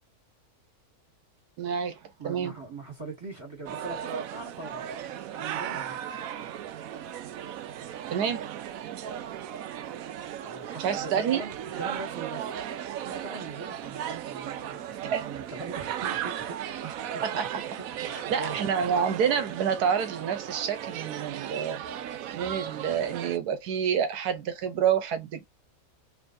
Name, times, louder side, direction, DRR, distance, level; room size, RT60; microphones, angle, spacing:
voice 1, 1.6-2.0 2.2-2.5 8.1-8.4 10.8-11.4 15.1-15.2 17.2-17.5 18.1-21.8 22.3-25.4, right 7 dB, 85° right, 1.4 m, -28 dB
voice 2, 2.2-6.0 8.8-9.0 10.4-18.6, right 3 dB, 20° right, 1.5 m, -42 dB
sound 1, 3.7-23.4, right 10 dB, 70° right, 1.0 m, -36 dB
3.9 x 3.3 x 2.6 m
omnidirectional pair, 1.6 m